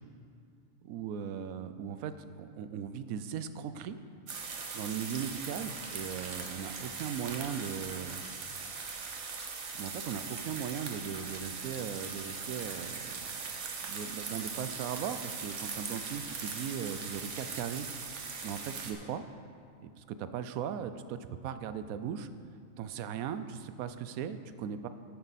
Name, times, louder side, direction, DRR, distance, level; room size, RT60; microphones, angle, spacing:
voice 1, 0.8-4.0 4.7-8.2 9.8-13.4 13.8-17.9 18.4-19.2 19.8-22.3 22.8-24.9, right 8 dB, 80° right, 11 dB, 1.0 m, -38 dB
sound 1, 4.3-18.9, right 5 dB, 60° right, 1.3 m, -40 dB
11.5 x 9.3 x 4.1 m, 2.3 s
omnidirectional pair, 1.5 m